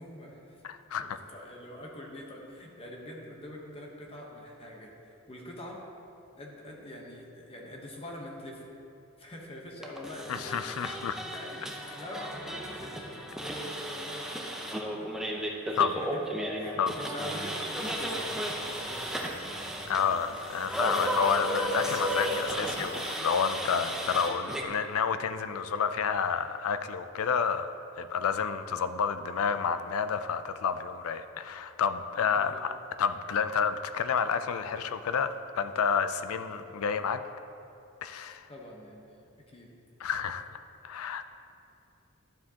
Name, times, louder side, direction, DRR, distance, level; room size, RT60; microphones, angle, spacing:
voice 1, 0.0-0.7 1.0-5.8 6.4-8.6 9.2-10.7 11.3-14.8 15.7-16.2 16.6-19.1 20.9-21.0 23.7-24.2 32.3-32.6 38.5-39.7, left 1 dB, 30° left, -1 dB, 1.0 m, -44 dB
voice 2, 0.6-1.2 10.3-11.2 15.8-16.0 16.8-16.9 19.9-27.7 28.0-32.7 33.0-37.2 38.0-38.5 40.0-40.5 40.8-41.3, left 6 dB, 75° left, 11 dB, 0.4 m, -30 dB
sound 1, 9.8-24.6, right 1 dB, ahead, 0.6 m, -34 dB
sound 2, 17.7-23.2, right 1 dB, 40° right, 1.9 m, -48 dB
12.0 x 7.5 x 2.9 m, 2.7 s
head